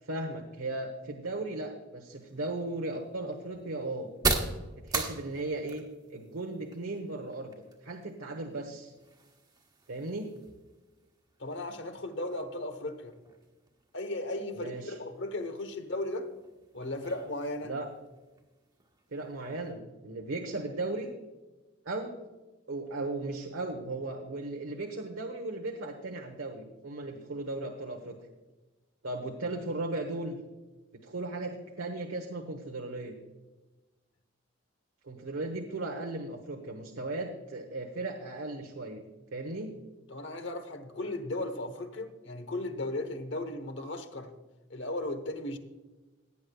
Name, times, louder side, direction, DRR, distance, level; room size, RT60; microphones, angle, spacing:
voice 1, 0.0-4.1 4.8-7.5 7.8-8.9 9.9-10.3 14.5-15.0 17.6-17.9 19.1-21.1 21.8-22.2 22.7-28.2 29.0-30.4 31.0-33.1 35.0-39.0 39.3-39.7, right 2 dB, 85° right, 3 dB, 1.1 m, -36 dB
sound 1, 2.1-19.7, right 3 dB, 20° right, 1.2 m, -41 dB
voice 2, 11.4-13.1 13.9-16.3 16.7-17.7 40.1-44.3 44.7-45.6, left 2 dB, 60° left, 9 dB, 1.1 m, -36 dB
16.5 x 9.5 x 2.3 m, 1.2 s
head